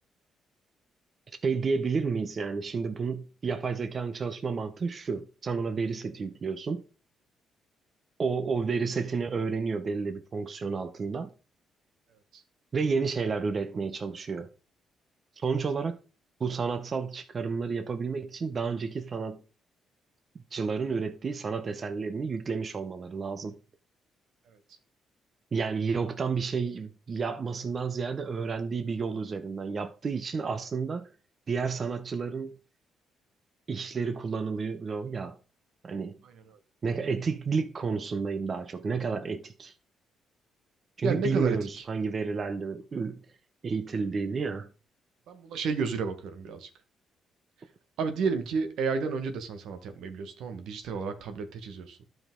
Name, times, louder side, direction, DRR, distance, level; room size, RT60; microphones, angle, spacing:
voice 1, 1.4-6.8 8.2-11.3 12.7-14.5 15.4-16.0 16.4-19.4 20.3-23.6 25.5-31.1 31.5-32.6 33.7-35.4 35.8-36.2 36.8-39.7 41.0-43.2 43.6-44.7, right 5 dB, 40° right, 0.8 m, -31 dB
voice 2, 36.2-36.6 41.0-41.8 45.3-46.7 48.0-52.0, right 4 dB, 80° right, 1.4 m, -31 dB
11.5 x 5.1 x 3.8 m
cardioid pair, 90°, 0 cm